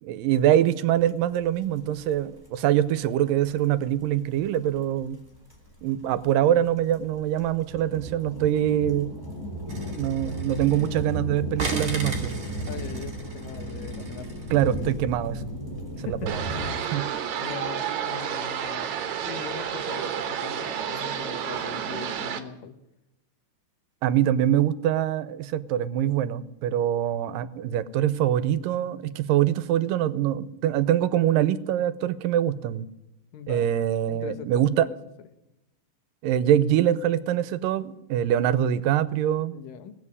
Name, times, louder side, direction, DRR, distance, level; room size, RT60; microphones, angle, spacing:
voice 1, 0.0-5.2 5.8-9.2 10.0-12.4 14.5-15.4 16.0-16.4 16.9-17.1 24.0-32.9 33.5-34.9 36.2-39.6, right 11 dB, 85° right, 14 dB, 2.5 m, -24 dB
sound 1, 1.1-1.2 1.3-16.7, right 1 dB, 5° left, 3.5 m, -35 dB
sound 2, 9.7-11.2 11.6-14.8, right 3 dB, 30° right, 2.8 m, -37 dB
voice 2, 10.0-11.1 12.7-14.4 16.0-16.6 17.4-18.9 19.2-22.8 33.3-33.7 34.1-35.0 39.5-40.0, left 8 dB, 80° left, 10 dB, 2.8 m, -41 dB
sound 3, 16.3-22.4, right 8 dB, 65° right, 2.4 m, -30 dB
18.0 x 8.1 x 9.6 m, 0.90 s
omnidirectional pair, 3.8 m